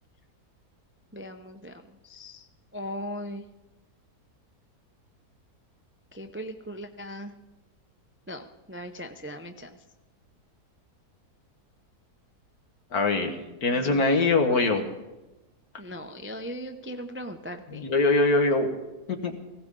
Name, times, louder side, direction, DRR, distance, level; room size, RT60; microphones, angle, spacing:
voice 1, 1.1-2.5 2.7-3.4 6.1-7.3 8.3-9.8 13.0-14.1 15.8-17.9, equal, 15° right, 6 dB, 0.4 m, -39 dB
voice 2, 12.9-13.3 13.6-14.8 17.7-18.7 19.1-19.4, left 3 dB, 70° left, 5 dB, 2.0 m, -22 dB
19.0 x 17.0 x 3.8 m, 1.0 s
omnidirectional pair, 1.7 m